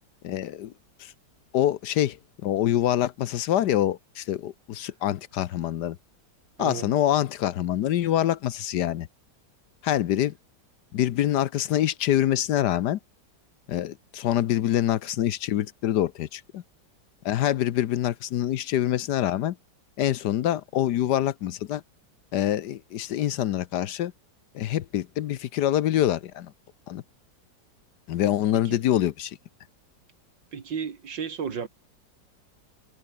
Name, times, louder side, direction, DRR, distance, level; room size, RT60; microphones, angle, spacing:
voice 1, 0.2-0.7 1.0-1.1 1.5-6.0 6.6-9.1 9.8-10.3 10.9-13.0 13.7-16.6 17.2-19.6 20.0-21.8 22.3-24.1 24.5-26.5 26.9-27.0 28.1-29.4, left 12 dB, 70° left, 1.3 m, -25 dB
voice 2, 6.6-6.9 30.5-31.7, right 6 dB, 75° right, 2.7 m, -32 dB
omnidirectional pair, 2.0 m